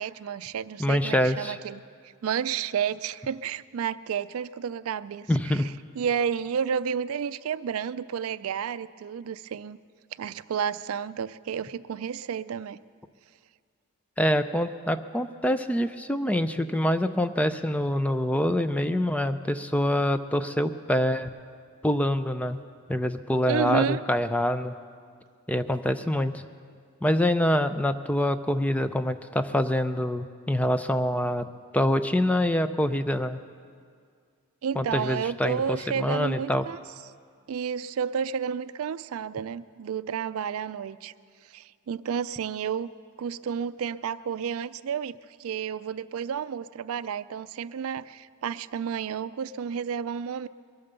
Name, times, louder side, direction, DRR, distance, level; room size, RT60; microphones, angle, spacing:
voice 1, 0.0-1.8 2.2-5.6 6.0-9.8 10.2-12.8 23.5-24.0 34.6-36.8 37.5-41.1 41.5-42.9 43.2-50.5, right 7 dB, 70° right, 15 dB, 0.4 m, -31 dB
voice 2, 0.8-1.6 5.3-5.7 14.2-21.3 21.8-22.6 22.9-24.7 25.5-26.4 27.0-31.5 31.7-33.4 34.8-36.7, left 1 dB, 5° left, 10 dB, 0.4 m, -25 dB
22.5 x 8.8 x 6.8 m, 2.1 s
head